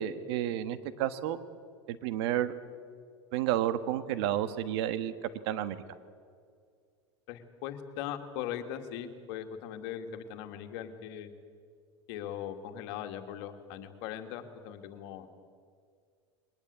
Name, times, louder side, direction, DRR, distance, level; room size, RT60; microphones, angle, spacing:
voice 1, 0.0-1.4 1.9-2.5 3.3-5.1 5.4-5.8, right 11 dB, 65° right, 12 dB, 1.4 m, -31 dB
voice 2, 7.3-11.3 12.1-15.3, left 10 dB, 60° left, 6 dB, 2.2 m, -40 dB
22.5 x 19.0 x 8.4 m, 2.2 s
hypercardioid pair, 95°, 14 cm